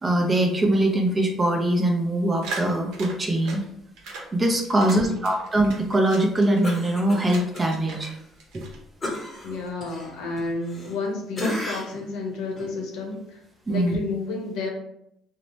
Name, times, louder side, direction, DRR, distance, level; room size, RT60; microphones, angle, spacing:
voice 1, 0.0-3.6 4.3-8.1 8.5-8.6 13.7-14.0, right 1 dB, 20° right, 1 dB, 0.5 m, -22 dB
sound 1, 2.4-3.7 4.0-4.3 4.6-6.8 7.2-8.1 8.4-9.2, right 3 dB, 80° right, 0.7 m, -38 dB
voice 2, 4.8-5.2 9.4-13.4 13.7-14.7, left 3 dB, 85° left, 0 dB, 0.8 m, -31 dB
Cough, 6.6-7.7 8.0-8.2 9.0-11.1 11.3-12.1 12.5-12.7, left 1 dB, 25° left, 0.8 m, -33 dB
2.7 x 2.0 x 3.0 m, 0.74 s
cardioid pair, 140°, 0 cm